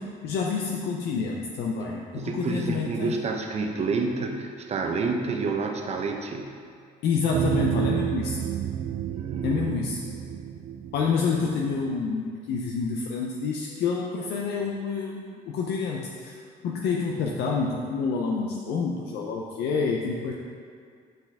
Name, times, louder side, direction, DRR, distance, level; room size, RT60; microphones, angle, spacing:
voice 1, 0.2-3.1 7.0-8.4 9.4-10.0 10.9-20.3, left 5 dB, 75° left, -1 dB, 0.6 m, -28 dB
voice 2, 2.2-6.5 9.0-9.7, right 4 dB, 40° right, 3 dB, 0.8 m, -29 dB
sound 1, 7.3-11.8, right 9 dB, 60° right, 0.4 m, -29 dB
7.6 x 5.9 x 3.5 m, 2.2 s
cardioid pair, 110°, 17 cm